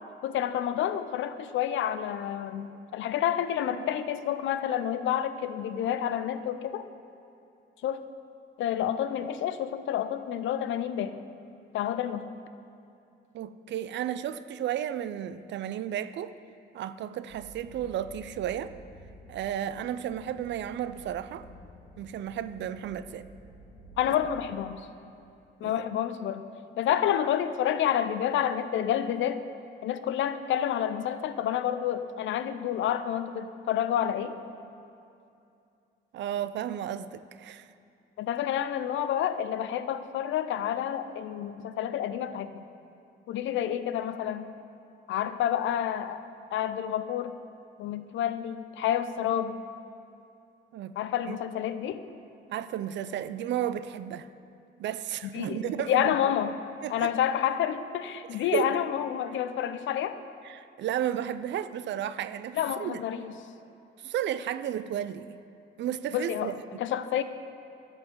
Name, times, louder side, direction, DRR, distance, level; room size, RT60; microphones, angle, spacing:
voice 1, 0.2-6.9 7.8-8.0 8.6-11.2 11.7-12.3 24.0-24.9 25.6-26.4 26.8-29.5 29.8-34.4 38.2-42.5 43.3-44.5 45.1-46.3 46.5-47.4 47.8-49.6 51.0-52.0 55.3-56.6 56.9-60.2 62.5-63.3 66.1-67.2, left 10 dB, 75° left, 11 dB, 0.5 m, -29 dB
voice 2, 13.3-16.3 16.7-18.7 19.3-21.5 22.0-23.3 24.1-24.2 25.6-25.9 36.1-37.7 50.7-50.9 51.3-51.4 52.5-54.3 54.8-56.2 56.8-57.1 58.3-58.8 60.4-63.3 64.0-65.4 65.8-66.8, right 10 dB, 65° right, 13 dB, 0.4 m, -33 dB
sound 1, 17.3-24.5, right 1 dB, 5° left, 2.5 m, -51 dB
11.5 x 4.5 x 7.4 m, 2.6 s
cardioid pair, 90°, 20 cm